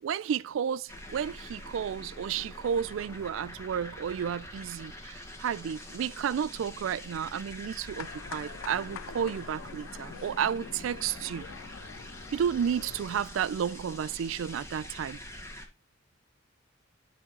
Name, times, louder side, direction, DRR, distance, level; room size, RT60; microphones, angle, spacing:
voice 1, 0.0-11.5 12.3-15.2, right 8 dB, 70° right, 0.3 m, -32 dB
sound 1, 0.9-15.7, left 1 dB, 15° left, 1.6 m, -45 dB
sound 2, 7.9-13.3, left 8 dB, 70° left, 0.3 m, -46 dB
10.5 x 4.2 x 3.7 m
head